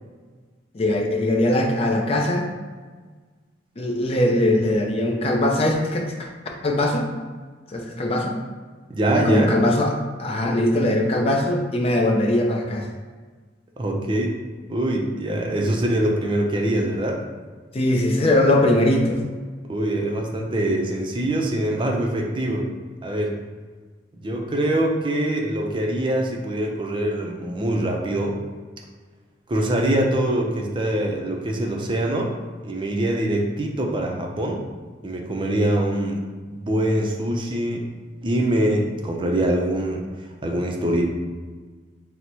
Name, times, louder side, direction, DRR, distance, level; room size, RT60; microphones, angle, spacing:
voice 1, 0.7-2.5 3.8-6.3 6.6-7.1 7.7-8.4 9.1-9.9 10.2-12.9 17.7-19.2, left 1 dB, 35° left, 1 dB, 0.5 m, -21 dB
voice 2, 8.9-9.5 13.8-14.3 14.7-17.2 19.7-22.7 23.0-23.4 24.2-28.3 29.5-32.3 32.6-34.6 35.0-36.2 36.5-37.9 38.2-40.0 40.4-41.0, right 1 dB, 25° right, 1 dB, 0.5 m, -23 dB
3.9 x 2.1 x 4.4 m, 1.4 s
head